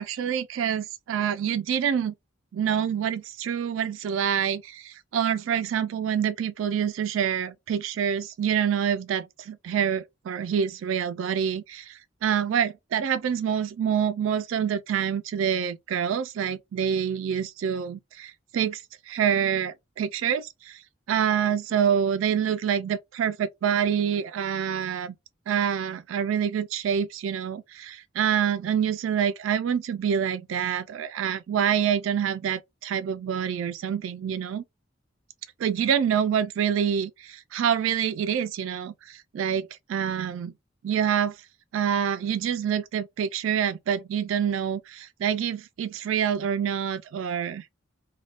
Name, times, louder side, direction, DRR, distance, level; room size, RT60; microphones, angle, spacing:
voice 1, 0.0-2.1 2.5-20.8 21.1-25.1 25.5-34.6 35.6-40.5 40.8-41.4 41.7-47.6, right 8 dB, 90° right, 0.3 m, -26 dB
3.4 x 2.2 x 2.3 m
head